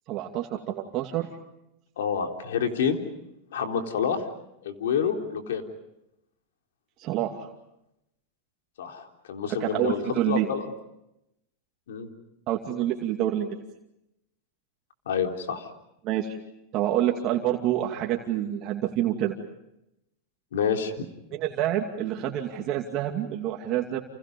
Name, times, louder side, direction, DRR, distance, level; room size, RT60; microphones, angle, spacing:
voice 1, 0.1-1.3 7.0-7.5 9.6-10.5 12.5-13.5 16.0-16.4 16.7-19.3 21.3-24.0, right 12 dB, 45° right, 2 dB, 2.5 m, -27 dB
voice 2, 2.0-3.0 3.5-4.2 4.6-5.6 8.8-10.7 11.9-12.1 15.1-15.7 20.5-21.1, left 7 dB, 90° left, 4 dB, 3.8 m, -28 dB
29.5 x 28.5 x 5.4 m, 0.84 s
supercardioid pair, 135°, 0 cm